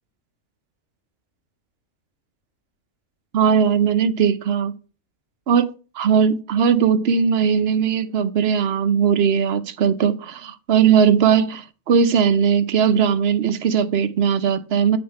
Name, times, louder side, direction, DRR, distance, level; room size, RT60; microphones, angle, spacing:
voice 1, 3.3-4.7 5.5-15.0, right 7 dB, 55° right, 0.8 m, -19 dB
8.7 x 5.3 x 4.2 m
omnidirectional pair, 1.5 m